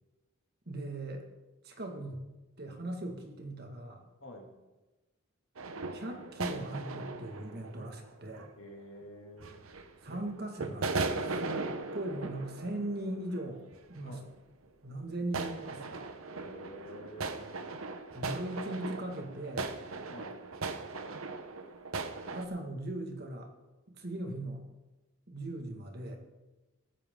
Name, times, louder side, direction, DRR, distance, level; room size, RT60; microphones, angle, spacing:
voice 1, 0.7-1.2 1.6-2.3 2.6-4.1 5.9-8.5 10.0-13.6 13.9-14.2 14.8-16.0 18.1-19.7 22.3-23.5 24.0-24.6 25.3-26.2, right 1 dB, 50° right, 3 dB, 1.9 m, -39 dB
voice 2, 4.2-4.5 8.6-9.7 14.0-14.3 16.3-17.6 20.1-20.4, equal, 65° left, 1 dB, 2.5 m, -49 dB
sound 1, 5.6-8.5 9.4-10.3 10.6-13.5 13.7-14.3 15.3-22.4, right 3 dB, 80° right, 1.0 m, -38 dB
16.5 x 14.5 x 3.8 m, 1.1 s
head